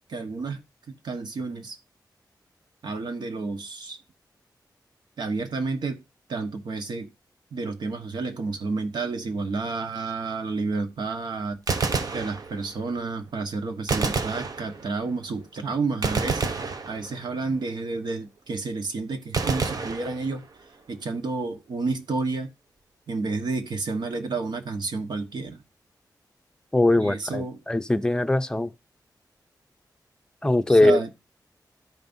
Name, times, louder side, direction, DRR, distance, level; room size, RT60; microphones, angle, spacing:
voice 1, 0.1-0.6 0.9-1.8 2.8-4.0 5.2-6.0 6.3-7.1 7.5-11.6 12.1-16.6 16.9-20.4 20.9-22.5 23.1-25.6 27.0-27.6 30.7-31.1, right 3 dB, 75° right, 1.2 m, -30 dB
Gunshot gunfire, 11.7-12.9 13.9-15.1 16.0-17.5 19.3-20.7, right 4 dB, 55° right, 0.8 m, -29 dB
voice 2, 26.7-28.7 30.4-31.0, left 2 dB, 10° left, 0.6 m, -21 dB
14.0 x 5.3 x 2.6 m
wide cardioid pair, 110°, 7 cm